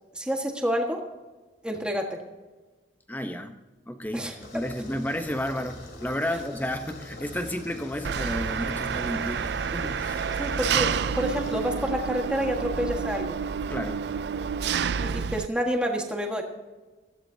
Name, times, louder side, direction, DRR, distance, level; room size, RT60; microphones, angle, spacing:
voice 1, 0.1-1.0 1.6-2.2 4.1-4.6 10.4-13.4 15.0-16.4, equal, 5° right, 1 dB, 1.5 m, -29 dB
voice 2, 3.1-3.6 3.9-10.3 13.7-14.1, left 1 dB, 10° left, 7 dB, 0.8 m, -32 dB
sound 1, 4.4-11.6, left 1 dB, 60° left, 2.7 m, -43 dB
Engine, 8.0-15.5, right 6 dB, 65° right, 0.4 m, -29 dB
17.0 x 15.0 x 2.8 m, 1.2 s
head